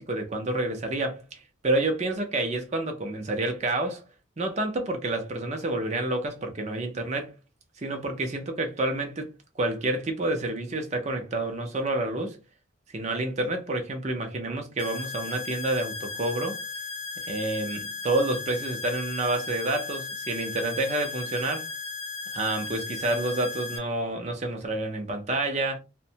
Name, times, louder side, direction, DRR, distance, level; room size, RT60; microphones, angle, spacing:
voice 1, 0.0-4.0 4.4-7.3 7.8-9.3 9.6-12.4 12.9-16.6 17.3-21.7 22.3-25.8, right 2 dB, 35° right, 0.5 m, -29 dB
sound 1, 14.8-23.8, left 4 dB, 80° left, 0.5 m, -36 dB
2.5 x 2.1 x 2.7 m
head